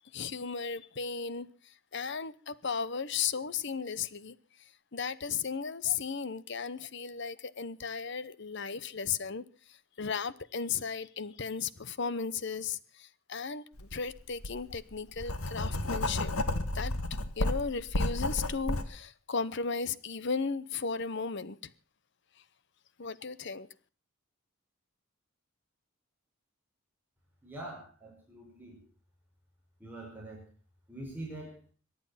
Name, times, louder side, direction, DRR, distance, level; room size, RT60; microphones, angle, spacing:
voice 1, 0.1-1.5 1.9-4.3 4.9-9.4 10.0-16.3 16.7-16.9 17.4-21.6 23.0-23.7, left 5 dB, 55° left, 0.9 m, -35 dB
Writing, 13.8-13.9 14.4-18.8, left 1 dB, 90° left, 1.7 m, -32 dB
voice 2, 27.4-28.8 29.8-30.4 30.9-31.6, right 1 dB, 10° right, 5.0 m, -44 dB
23.5 x 9.7 x 5.7 m
head